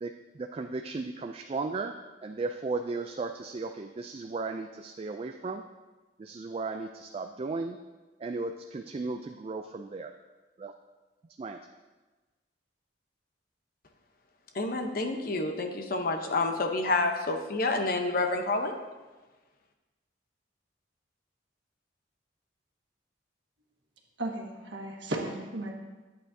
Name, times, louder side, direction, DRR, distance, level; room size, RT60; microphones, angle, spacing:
voice 1, 0.0-1.9 2.2-5.6 6.2-7.8 8.2-10.1 10.6-10.7 11.4-11.6, right 3 dB, 30° right, 5 dB, 0.3 m, -35 dB
voice 2, 14.5-18.8, left 2 dB, 50° left, 4 dB, 0.8 m, -28 dB
voice 3, 24.2-25.7, right 1 dB, 70° right, 0 dB, 1.4 m, -35 dB
11.5 x 8.4 x 2.7 m, 1.2 s
head